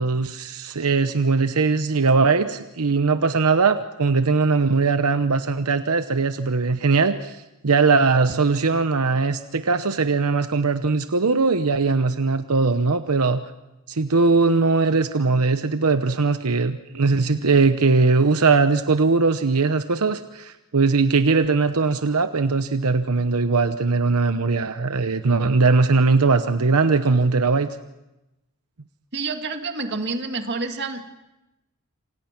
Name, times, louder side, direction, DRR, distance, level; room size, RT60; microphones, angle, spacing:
voice 1, 0.0-13.4 13.9-27.7, right 4 dB, 85° right, 9 dB, 0.9 m, -20 dB
voice 2, 29.1-31.1, right 3 dB, 50° right, 5 dB, 2.2 m, -28 dB
27.5 x 27.0 x 6.0 m, 0.97 s
head